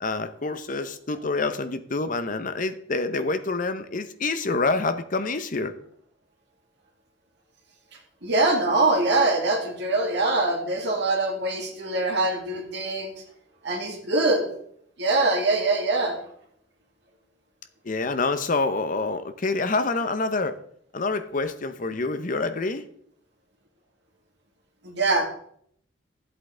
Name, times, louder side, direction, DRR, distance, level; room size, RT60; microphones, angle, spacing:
voice 1, 0.0-5.7 17.8-20.6 20.9-22.9, left 3 dB, 45° left, 10 dB, 0.8 m, -27 dB
voice 2, 8.2-13.1 13.6-14.5 15.0-16.2 24.8-25.2, right 2 dB, 65° right, 0 dB, 2.2 m, -23 dB
12.5 x 8.1 x 3.8 m, 0.66 s
head